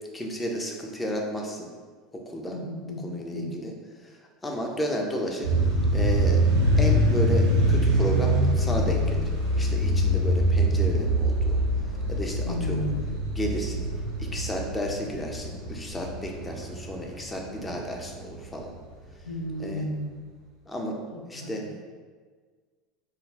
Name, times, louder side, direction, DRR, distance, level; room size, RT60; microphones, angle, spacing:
voice 1, 0.1-1.7 2.1-2.6 2.8-3.7 4.0-5.5 5.9-6.5 6.8-9.2 9.5-11.6 12.1-12.9 13.3-13.9 14.2-18.7 19.6-19.9 20.7-21.7, equal, 15° left, 0 dB, 0.5 m, -32 dB
voice 2, 2.5-3.6 12.4-13.1 19.3-20.1 21.1-21.5, equal, 90° left, -5 dB, 0.3 m, -33 dB
sound 1, 5.4-18.5, right 1 dB, 85° right, 0.6 m, -24 dB
2.3 x 2.1 x 3.2 m, 1.5 s
hypercardioid pair, 75°, 0 cm